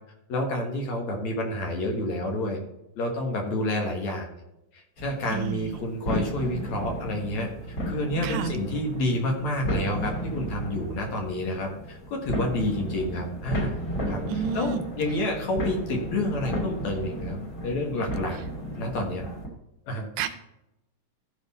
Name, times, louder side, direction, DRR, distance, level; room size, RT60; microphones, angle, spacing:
voice 1, 0.3-2.6 3.0-4.3 4.7-13.8 14.1-17.4 17.6-18.4 18.8-19.2 19.9-20.1, left 1 dB, 60° left, 1 dB, 2.4 m, -29 dB
sound 1, 5.0-19.5, equal, 30° left, 1.9 m, -34 dB
voice 2, 5.3-5.7 8.2-8.5 14.3-14.8 20.2-20.3, right 6 dB, 80° right, 8 dB, 2.3 m, -30 dB
15.0 x 5.3 x 4.1 m, 0.89 s
omnidirectional pair, 4.3 m